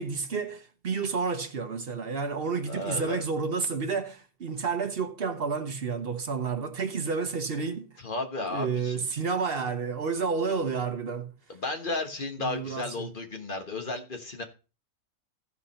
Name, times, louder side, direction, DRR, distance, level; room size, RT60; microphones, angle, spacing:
voice 1, 0.0-7.9 8.5-11.3 12.4-13.1, right 5 dB, 45° right, 0.9 m, -30 dB
voice 2, 2.7-3.2 8.0-9.1 11.5-14.4, left 2 dB, 35° left, 1.4 m, -34 dB
15.5 x 5.1 x 4.3 m
omnidirectional pair, 1.8 m